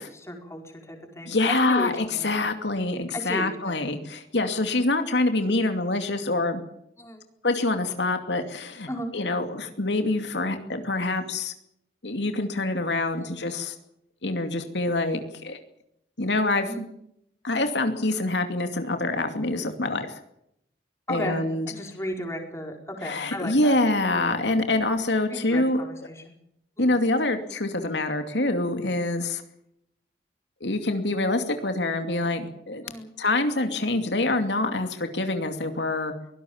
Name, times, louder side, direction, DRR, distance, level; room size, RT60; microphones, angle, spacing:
voice 1, 0.3-2.4 3.1-3.9 7.0-7.2 8.9-9.1 13.1-13.4 16.7-16.9 21.1-21.4 21.7-23.8 25.3-26.3 26.8-27.0 32.8-33.1, equal, 15° left, 3 dB, 4.9 m, -35 dB
voice 2, 1.3-6.6 7.4-11.5 12.0-13.7 14.2-15.6 16.2-16.7 17.4-20.2 21.1-21.7 23.0-25.8 26.8-29.4 30.6-32.8 33.2-36.1, left 2 dB, 80° left, 7 dB, 2.5 m, -25 dB
23.5 x 18.5 x 7.2 m, 0.76 s
head